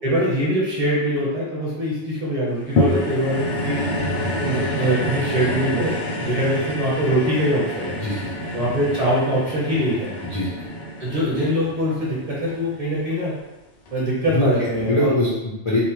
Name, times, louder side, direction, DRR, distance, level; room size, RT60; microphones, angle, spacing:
voice 1, 0.0-3.9 4.4-7.9 8.5-10.2 11.0-13.3 13.9-15.1, equal, 35° right, -7 dB, 0.8 m, -23 dB
sound 1, 2.8-13.2 13.9-14.0, left 1 dB, 65° left, 0.8 m, -27 dB
voice 2, 8.0-8.5 10.2-10.6 14.3-14.5 14.9-15.8, left 1 dB, 50° left, -7 dB, 0.3 m, -23 dB
2.6 x 2.0 x 3.0 m, 1.0 s
omnidirectional pair, 1.2 m